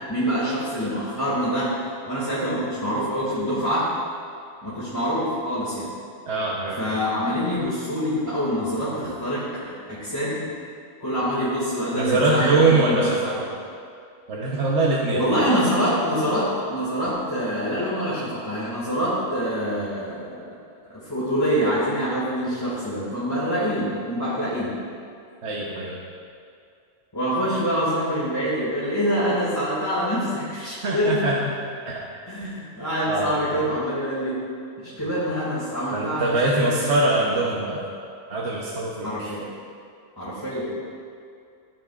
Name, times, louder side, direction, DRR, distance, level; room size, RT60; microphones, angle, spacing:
voice 1, 0.1-1.7 2.1-3.9 4.6-5.9 6.8-10.4 11.0-13.4 15.1-20.4 20.9-24.8 27.1-31.2 32.3-34.4 34.8-36.3 36.6-36.9 39.0-39.5 40.2-40.8, equal, 15° left, -11 dB, 2.2 m, -25 dB
voice 2, 6.3-6.8 11.9-13.5 14.3-15.2 25.4-26.0 30.8-31.6 31.9-32.0 32.4-32.5 33.1-33.4 35.9-37.8 38.3-39.3, right 2 dB, 50° right, -4 dB, 1.2 m, -23 dB
14.5 x 9.1 x 2.5 m, 2.4 s
omnidirectional pair, 1.6 m